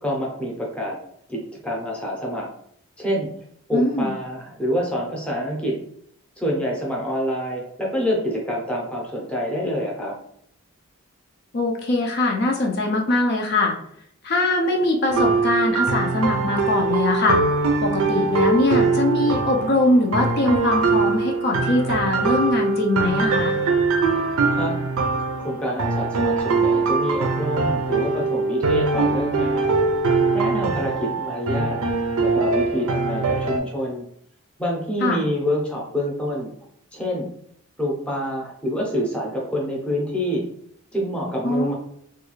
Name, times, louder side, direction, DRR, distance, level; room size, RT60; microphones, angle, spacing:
voice 1, 0.0-1.0 1.3-2.5 3.0-3.3 3.7-5.7 6.4-10.1 24.5-24.7 25.4-29.8 30.3-31.8 32.2-34.0 34.6-36.5 36.9-37.3 37.8-40.4 40.9-41.7, equal, 5° left, -3 dB, 0.6 m, -26 dB
voice 2, 3.7-4.1 11.5-13.8 14.2-17.4 17.8-23.6 35.0-35.2 41.4-41.7, left 2 dB, 50° left, 1 dB, 0.4 m, -22 dB
sound 1, 15.1-33.6, right 3 dB, 75° right, 0.5 m, -22 dB
3.2 x 2.3 x 3.0 m, 0.69 s
head